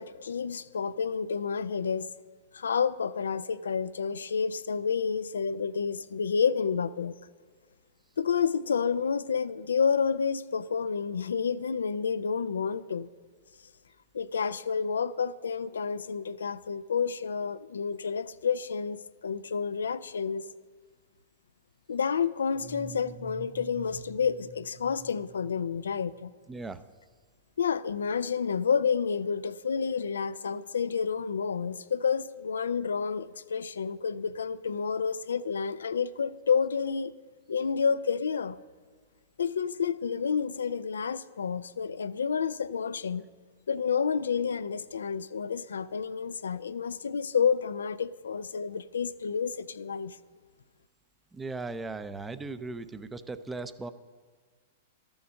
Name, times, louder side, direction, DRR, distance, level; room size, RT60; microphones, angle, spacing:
voice 1, 0.0-2.1 2.5-7.1 8.2-13.1 14.1-20.4 21.9-26.3 27.6-37.1 37.5-38.6 39.4-43.2 43.7-50.2, left 6 dB, 90° left, 15 dB, 0.3 m, -29 dB
sound 1, 22.5-26.2, right 4 dB, 45° right, 1.2 m, -48 dB
voice 2, 26.5-26.8 51.3-53.9, right 3 dB, 10° right, 12 dB, 0.5 m, -37 dB
12.0 x 7.0 x 6.4 m, 1.5 s
hypercardioid pair, 120°, 0 cm